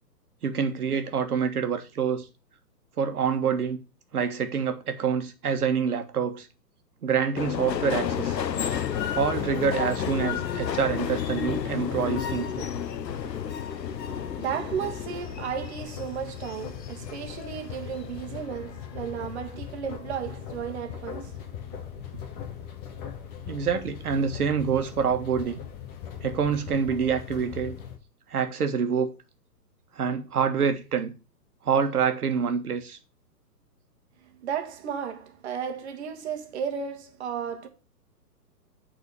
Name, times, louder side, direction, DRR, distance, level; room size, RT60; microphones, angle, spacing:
voice 1, 0.4-2.3 3.0-3.8 4.1-6.5 7.0-8.4 9.1-12.7 23.5-25.6 26.2-27.8 28.3-29.1 30.0-31.1 31.6-33.0, right 6 dB, 60° right, 1.7 m, -26 dB
Subway metro underground, 7.4-18.1 18.4-19.2 19.4-19.6, left 8 dB, 80° left, 0.7 m, -33 dB
sound 1, 8.0-28.0, left 8 dB, 25° left, 1.3 m, -38 dB
voice 2, 14.0-21.4 21.7-21.8 34.4-37.7, right 8 dB, 40° right, 1.6 m, -34 dB
8.4 x 4.3 x 6.7 m
figure-of-eight pair, 130°, 49 cm